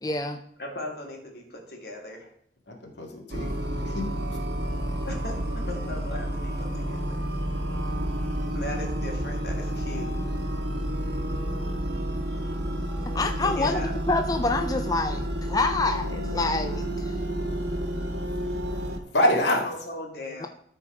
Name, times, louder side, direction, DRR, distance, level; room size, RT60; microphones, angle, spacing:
voice 1, 0.0-0.4 13.1-13.8 14.1-17.2 20.4-20.5, left 3 dB, 20° left, 7 dB, 0.4 m, -27 dB
voice 2, 0.6-2.3 5.1-7.2 8.5-10.1 13.4-13.9 19.4-20.5, left 1 dB, 60° left, 1 dB, 2.3 m, -37 dB
voice 3, 2.7-4.4 19.1-19.7, left 1 dB, 85° left, 1 dB, 2.3 m, -26 dB
sound 1, 3.3-19.0, equal, 80° right, 1.4 m, -30 dB
13.0 x 4.5 x 4.9 m, 0.69 s
head